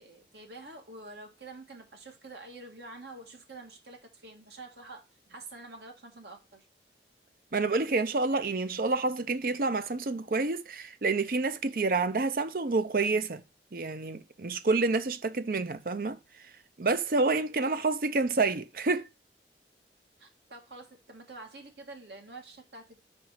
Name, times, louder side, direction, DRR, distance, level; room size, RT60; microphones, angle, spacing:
voice 1, 0.0-5.0 5.3-6.7 20.2-23.0, right 2 dB, 75° right, 1.9 m, -47 dB
voice 2, 7.5-13.4 13.7-16.2 16.8-19.1, right 3 dB, 55° right, 0.6 m, -28 dB
4.9 x 4.5 x 5.6 m
head